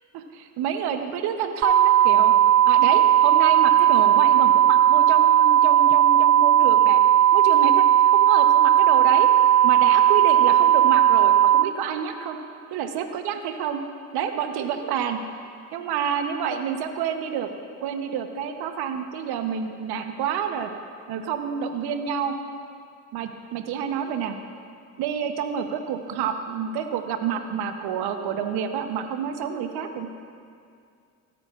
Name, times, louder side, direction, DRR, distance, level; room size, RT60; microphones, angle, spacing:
voice 1, 0.1-2.3 2.7-7.0 7.3-9.3 9.6-12.4 12.7-13.8 14.1-15.2 15.7-17.5 17.8-20.7 21.1-22.4 23.1-24.4 25.0-30.1, right 7 dB, 75° right, 7 dB, 1.0 m, -29 dB
sound 1, 1.6-11.6, right 11 dB, 45° right, 0.6 m, -16 dB
17.5 x 8.9 x 2.5 m, 2.4 s
supercardioid pair, 65°, 39 cm